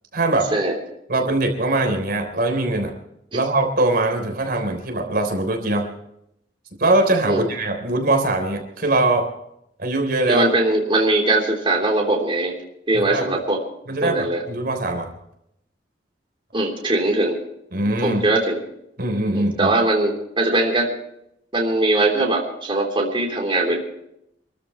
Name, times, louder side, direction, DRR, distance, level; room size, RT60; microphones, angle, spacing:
voice 1, 0.1-0.5 1.1-2.9 3.3-5.9 6.8-9.3 9.8-10.5 12.9-13.2 13.9-15.1 17.7-18.2 19.0-19.7, right 2 dB, 55° right, 3 dB, 3.5 m, -21 dB
voice 2, 10.3-12.6 12.9-13.6 14.0-14.4 16.5-17.4 18.0-18.6 19.3-20.9 21.5-23.8, right 2 dB, 30° right, 0 dB, 3.4 m, -20 dB
27.0 x 14.0 x 3.1 m, 0.77 s
head